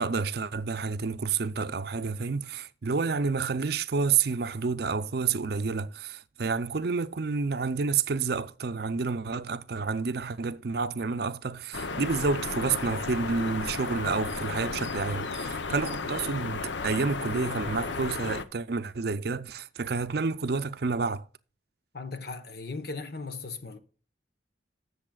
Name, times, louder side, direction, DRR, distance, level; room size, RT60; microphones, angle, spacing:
voice 1, 0.0-21.3, right 4 dB, 60° right, 0.5 m, -29 dB
sound 1, 11.7-18.4, left 4 dB, 80° left, 0.8 m, -34 dB
voice 2, 21.9-23.8, left 3 dB, 55° left, 1.2 m, -37 dB
19.5 x 7.1 x 2.3 m
head